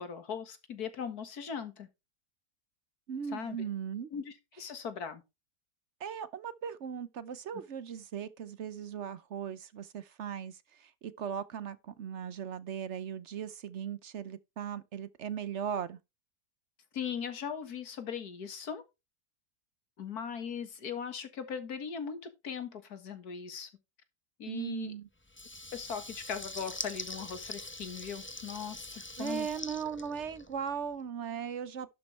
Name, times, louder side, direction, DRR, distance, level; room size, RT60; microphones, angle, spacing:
voice 1, 0.0-1.9 3.3-3.6 4.1-5.2 16.9-18.8 20.0-23.7 24.4-24.9 25.7-29.5, left 7 dB, 70° left, 2.1 m, -39 dB
voice 2, 3.1-4.1 6.0-16.0 24.5-25.1 29.2-31.9, right 7 dB, 55° right, 0.9 m, -38 dB
Water tap faucet / Liquid, 25.3-30.8, left 2 dB, 15° left, 0.4 m, -43 dB
11.5 x 7.5 x 3.2 m
omnidirectional pair, 1.7 m